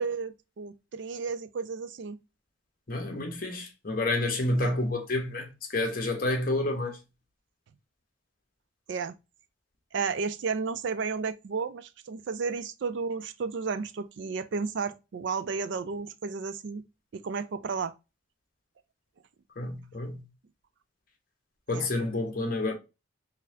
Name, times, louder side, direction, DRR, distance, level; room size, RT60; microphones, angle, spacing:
voice 1, 0.0-2.2 4.6-4.8 8.9-9.2 9.9-16.8 17.1-17.9 21.7-21.9, right 5 dB, 60° right, 0.4 m, -33 dB
voice 2, 2.9-5.5 5.7-7.0 19.6-20.2 21.7-22.7, left 2 dB, 45° left, 0.9 m, -29 dB
3.9 x 2.7 x 2.5 m
head